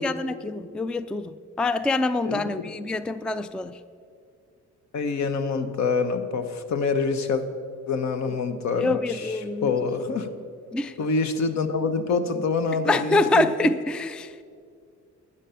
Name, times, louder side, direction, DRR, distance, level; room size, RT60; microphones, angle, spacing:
voice 1, 0.0-3.8 8.8-9.7 10.7-10.9 12.9-14.4, left 2 dB, 5° left, 0.3 m, -25 dB
voice 2, 2.2-2.7 4.9-7.4 7.9-10.3 11.0-13.5, left 4 dB, 65° left, 1.1 m, -26 dB
12.0 x 9.7 x 5.7 m
cardioid pair, 90°, 30 cm